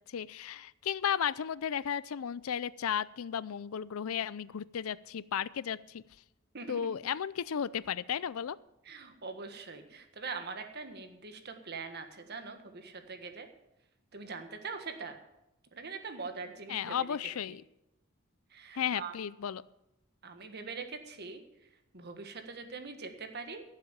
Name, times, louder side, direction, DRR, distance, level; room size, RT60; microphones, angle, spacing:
voice 1, 0.1-6.0 6.7-8.6 16.7-17.6 18.7-19.6, left 8 dB, 90° left, 19 dB, 0.5 m, -34 dB
voice 2, 6.5-6.9 8.8-13.5 14.1-15.2 15.7-17.0 18.5-19.1 20.2-21.4 21.9-23.6, right 4 dB, 50° right, 6 dB, 1.5 m, -42 dB
15.5 x 7.6 x 7.3 m, 0.89 s
head